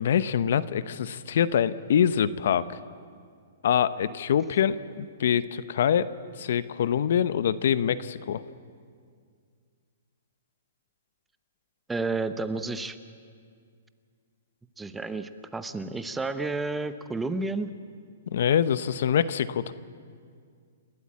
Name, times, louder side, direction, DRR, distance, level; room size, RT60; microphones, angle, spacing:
voice 1, 0.0-2.8 3.6-6.1 6.4-8.4 18.3-19.7, left 9 dB, 65° left, 16 dB, 0.8 m, -25 dB
voice 2, 11.9-13.0 14.8-17.7, right 3 dB, 5° right, 11 dB, 0.8 m, -31 dB
28.5 x 13.0 x 8.7 m, 2.1 s
hypercardioid pair, 150°, 0 cm